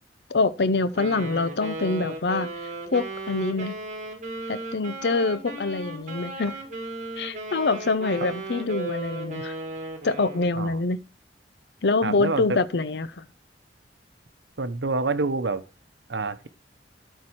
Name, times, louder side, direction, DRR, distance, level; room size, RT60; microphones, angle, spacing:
voice 1, 0.3-2.5 2.9-3.8 4.5-6.6 7.2-9.5 10.0-11.0 11.8-13.2, left 3 dB, 65° left, 0.7 m, -25 dB
Wind instrument woodwind instrument, 1.0-10.5, right 2 dB, 40° right, 2.1 m, -36 dB
voice 2, 12.0-12.6 14.6-15.6 16.1-16.5, right 3 dB, 80° right, 0.9 m, -27 dB
13.0 x 4.6 x 4.6 m
head